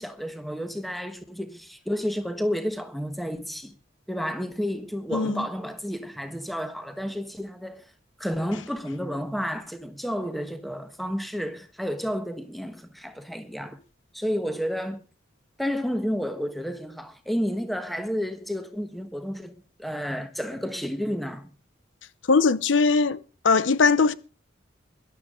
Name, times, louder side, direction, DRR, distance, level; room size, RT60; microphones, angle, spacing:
voice 1, 0.0-3.7 4.1-7.8 8.2-13.8 14.1-15.0 15.6-21.5, equal, ahead, 1.4 m, -31 dB
voice 2, 5.1-5.5 22.3-24.1, left 4 dB, 75° left, 0.7 m, -21 dB
21.0 x 12.0 x 3.8 m
head